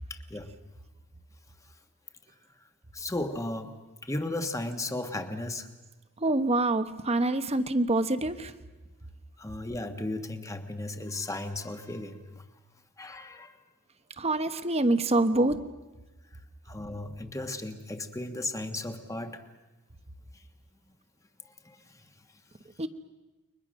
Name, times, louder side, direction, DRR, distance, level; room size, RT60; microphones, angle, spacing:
voice 1, 0.1-0.5 2.9-5.7 9.4-12.3 13.0-13.6 16.6-19.4 20.3-20.4 21.5-22.0, left 2 dB, 15° left, 7 dB, 1.4 m, -35 dB
voice 2, 6.2-8.5 14.2-15.6 22.8-22.9, right 2 dB, 30° right, 11 dB, 1.1 m, -25 dB
29.5 x 23.5 x 6.4 m, 1.1 s
head